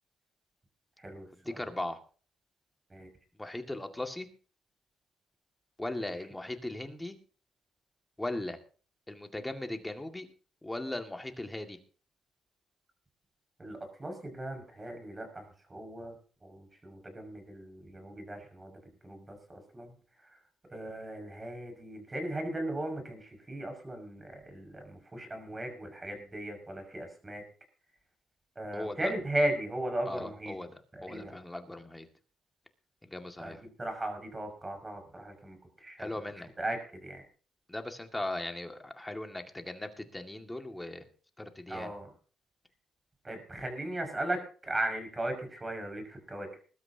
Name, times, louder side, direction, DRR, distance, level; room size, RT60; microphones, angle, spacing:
voice 1, 1.4-2.0 3.4-4.3 5.8-7.2 8.2-8.6 9.1-10.3 10.6-11.8 28.7-29.1 30.1-32.1 33.0-33.6 36.0-36.5 37.7-41.1 41.4-41.9, left 1 dB, 10° left, 5 dB, 2.1 m, -38 dB
voice 2, 13.6-15.4 15.7-16.1 16.4-18.7 19.0-19.9 20.7-27.4 28.6-30.5 31.0-31.3 33.4-33.5 33.8-36.1 36.6-37.2 41.7-42.1 43.2-46.5, right 1 dB, 20° right, 5 dB, 5.9 m, -37 dB
20.5 x 12.5 x 2.9 m, 0.40 s
cardioid pair, 90°, 0 cm